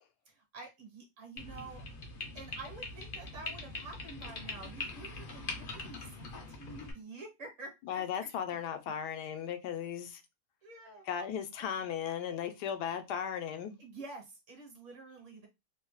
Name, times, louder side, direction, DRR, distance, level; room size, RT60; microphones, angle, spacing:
voice 1, 0.3-1.8 2.3-8.3 10.6-11.1 13.8-15.5, right 3 dB, 55° right, 1.2 m, -49 dB
sound 1, 1.4-6.9, left 3 dB, 60° left, 0.5 m, -42 dB
voice 2, 7.9-10.2 11.1-13.8, left 8 dB, 80° left, 1.1 m, -36 dB
2.9 x 2.1 x 3.0 m
omnidirectional pair, 1.7 m